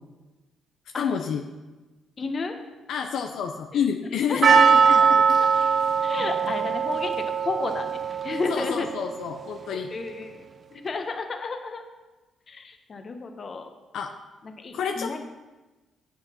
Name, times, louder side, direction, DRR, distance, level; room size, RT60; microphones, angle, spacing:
voice 1, 1.0-1.4 2.9-5.4 8.5-9.9 13.9-14.1 14.7-15.2, left 7 dB, 75° left, 4 dB, 0.6 m, -29 dB
voice 2, 2.2-2.6 3.7-3.8 4.3-5.0 5.4-5.5 6.0-8.9 9.7-10.4 10.7-11.8 12.5-13.7 14.6-15.2, left 4 dB, 40° left, 6 dB, 1.1 m, -32 dB
Percussion, 4.4-9.3, right 6 dB, 45° right, 0.5 m, -21 dB
8.1 x 6.3 x 5.9 m, 1.2 s
cardioid pair, 90°, 0 cm